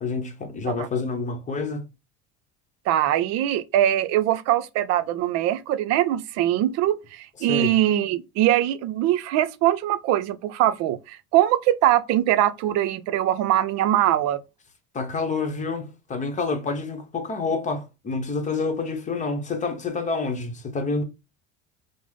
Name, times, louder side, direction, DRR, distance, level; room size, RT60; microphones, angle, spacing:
voice 1, 0.0-1.9 7.5-7.8 14.9-21.0, left 4 dB, 25° left, 0.8 m, -28 dB
voice 2, 2.9-14.4, right 12 dB, 60° right, 0.5 m, -22 dB
5.2 x 2.0 x 3.3 m
cardioid pair, 125°, 29 cm